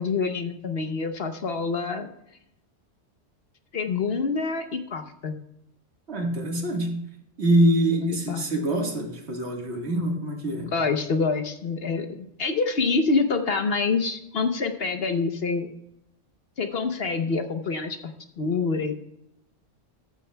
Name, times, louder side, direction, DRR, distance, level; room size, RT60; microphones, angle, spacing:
voice 1, 0.0-2.1 3.7-5.4 7.9-8.4 10.7-15.7 16.6-18.9, left 4 dB, 55° left, 7 dB, 1.0 m, -26 dB
voice 2, 6.1-7.0 7.4-10.7, right 1 dB, 60° right, 2 dB, 1.9 m, -24 dB
13.5 x 12.5 x 2.2 m, 0.80 s
omnidirectional pair, 1.3 m